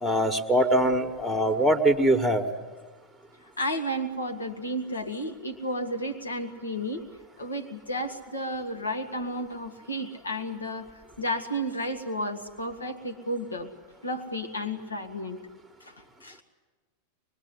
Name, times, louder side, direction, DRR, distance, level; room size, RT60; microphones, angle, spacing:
voice 1, 0.0-2.4, right 1 dB, ahead, 4 dB, 1.6 m, -22 dB
voice 2, 3.6-7.0 7.4-13.7 14.0-15.4 15.8-16.0 16.2-16.4, equal, 75° left, 5 dB, 1.9 m, -32 dB
24.5 x 22.0 x 9.7 m, 1.4 s
figure-of-eight pair, 90°, 0 cm